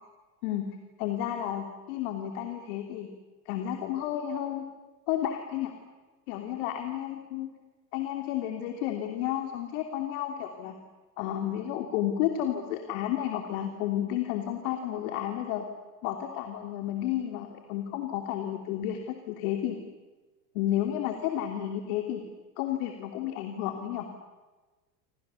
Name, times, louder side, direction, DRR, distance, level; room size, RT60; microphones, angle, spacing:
voice 1, 1.0-3.1 3.4-4.6 5.1-5.7 6.3-7.5 7.9-10.8 11.2-15.6 16.0-19.8 20.5-22.2 22.6-24.1, left 11 dB, 60° left, 5 dB, 3.0 m, -31 dB
29.0 x 27.0 x 7.0 m, 1.3 s
hypercardioid pair, 95°, 49 cm